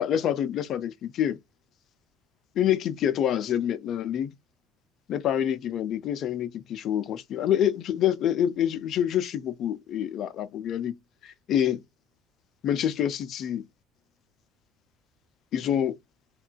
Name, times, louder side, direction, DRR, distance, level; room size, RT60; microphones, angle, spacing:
voice 1, 0.0-1.4 2.6-4.3 5.1-11.8 12.6-13.7 15.5-16.0, left 10 dB, 50° left, 0.4 m, -27 dB
3.0 x 2.3 x 2.3 m
hypercardioid pair, 60°, 0 cm